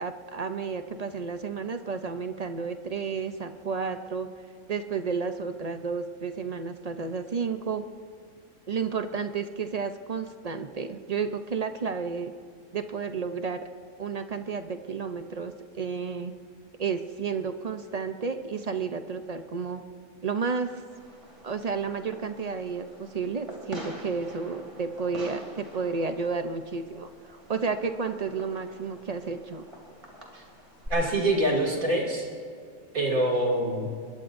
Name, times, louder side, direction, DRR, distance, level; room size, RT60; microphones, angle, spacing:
voice 1, 0.0-4.3 4.7-7.8 8.7-12.3 12.7-13.6 14.0-16.3 16.8-19.8 20.2-20.7 21.4-29.6, right 5 dB, 40° right, 8 dB, 0.5 m, -31 dB
Fireworks, 20.9-30.9, right 1 dB, 20° right, 2.8 m, -45 dB
voice 2, 30.9-32.3 32.9-33.9, right 1 dB, 90° right, -1 dB, 3.0 m, -25 dB
22.0 x 21.5 x 2.6 m, 2.2 s
omnidirectional pair, 1.4 m